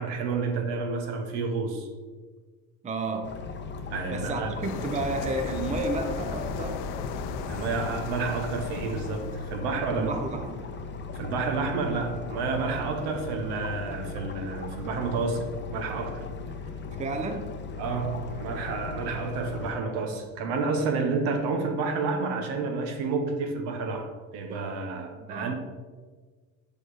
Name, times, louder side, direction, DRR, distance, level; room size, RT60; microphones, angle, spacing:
voice 1, 0.0-1.9 3.9-4.7 7.5-10.1 11.1-16.2 17.8-25.5, right 4 dB, 75° right, 1.1 m, -30 dB
voice 2, 2.8-3.4 4.1-6.9 9.9-10.6 17.0-17.5 25.2-25.5, right 2 dB, 15° right, 0.6 m, -31 dB
sound 1, 3.2-19.7, left 5 dB, 25° left, 0.6 m, -38 dB
sound 2, 4.6-9.7, left 8 dB, 70° left, 0.6 m, -38 dB
Gong, 5.0-10.3, equal, 10° left, 1.8 m, -41 dB
5.2 x 4.2 x 4.9 m
supercardioid pair, 95°, 42 cm